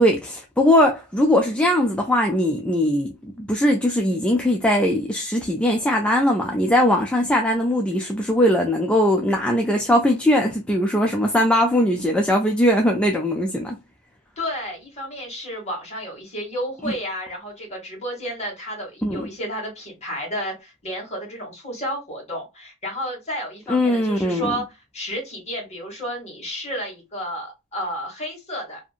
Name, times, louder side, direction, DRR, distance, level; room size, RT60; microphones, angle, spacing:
voice 1, 0.0-13.8 16.8-16.9 19.0-19.3 23.7-24.5, left 1 dB, 5° left, 0.3 m, -20 dB
voice 2, 14.4-24.6 24.9-28.8, equal, 30° left, 1.5 m, -31 dB
2.7 x 2.5 x 2.3 m
head